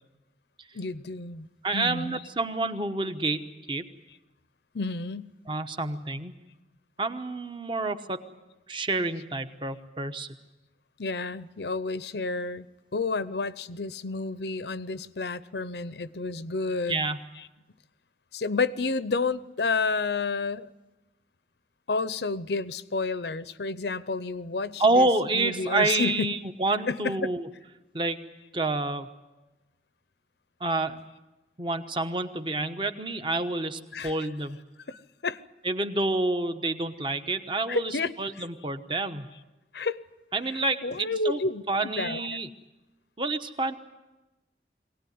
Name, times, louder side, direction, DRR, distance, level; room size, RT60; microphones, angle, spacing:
voice 1, 0.7-1.5 1.7-2.2 4.7-5.3 11.0-12.7 12.9-17.0 18.3-20.7 21.9-25.1 25.3-26.3 26.9-27.3 33.9-34.1 34.9-35.4 37.7-38.1 39.7-40.0 40.5-41.6 42.0-42.2, left 3 dB, 75° left, 15 dB, 0.7 m, -30 dB
voice 2, 1.6-3.8 5.5-6.3 7.0-8.2 8.7-10.3 16.9-17.2 24.8-27.5 27.9-28.2 28.5-29.1 30.6-31.0 31.6-34.6 35.6-39.3 40.3-41.4 41.7-42.5 43.2-43.7, right 2 dB, 30° right, 9 dB, 1.0 m, -28 dB
23.0 x 18.0 x 9.5 m, 1.1 s
head